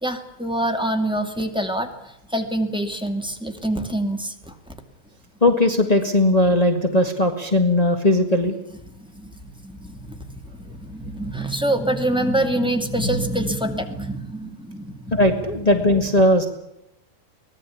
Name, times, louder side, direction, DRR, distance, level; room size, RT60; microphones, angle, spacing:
voice 1, 0.0-1.9 2.3-4.5 8.9-15.2, right 1 dB, ahead, 6 dB, 1.8 m, -26 dB
voice 2, 5.4-8.6 15.1-16.5, left 1 dB, 35° left, 4 dB, 0.6 m, -18 dB
24.0 x 18.5 x 8.5 m, 0.82 s
omnidirectional pair, 3.9 m